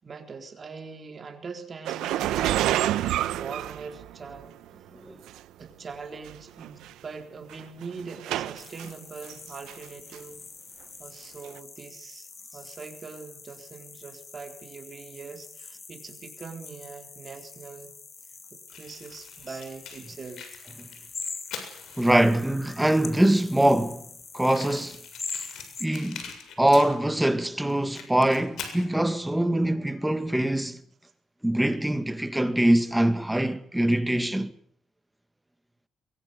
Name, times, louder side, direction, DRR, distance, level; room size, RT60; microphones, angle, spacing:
voice 1, 0.0-4.5 5.6-10.5 11.0-17.9 18.5-20.5, right 4 dB, 40° right, 3.9 m, -42 dB
sound 1, 1.9-4.4 5.3-5.4 6.3-6.4 6.6-6.9 7.5-8.9 9.3-9.9 10.1-10.2 11.4-11.5, right 13 dB, 90° right, 1.0 m, -28 dB
sound 2, 8.6-25.9, left 4 dB, 35° left, 3.5 m, -44 dB
Fire, 18.7-22.5 23.2-23.3 23.4-23.5 23.8-23.9 24.4-27.3 27.6-28.9, left 6 dB, 75° left, 7.1 m, -42 dB
voice 2, 22.0-24.1 24.3-25.0 25.8-30.8 31.4-34.5, right 1 dB, 5° right, 2.0 m, -23 dB
22.5 x 22.5 x 8.2 m
cardioid pair, 90°, 0 cm